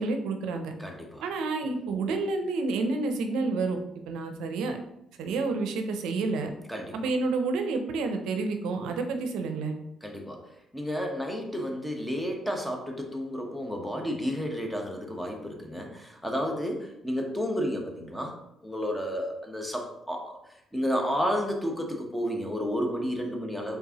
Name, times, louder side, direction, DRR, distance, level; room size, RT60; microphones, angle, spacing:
voice 1, 0.0-0.7 1.2-3.8 4.1-4.8 5.2-6.5 6.9-9.8, right 3 dB, 90° right, 6 dB, 0.5 m, -29 dB
voice 2, 0.8-1.2 6.7-6.9 10.0-10.4 10.7-18.3 18.6-20.4 20.7-23.8, equal, 5° left, 2 dB, 0.9 m, -31 dB
4.5 x 3.3 x 2.8 m, 0.83 s
cardioid pair, 90°, 0 cm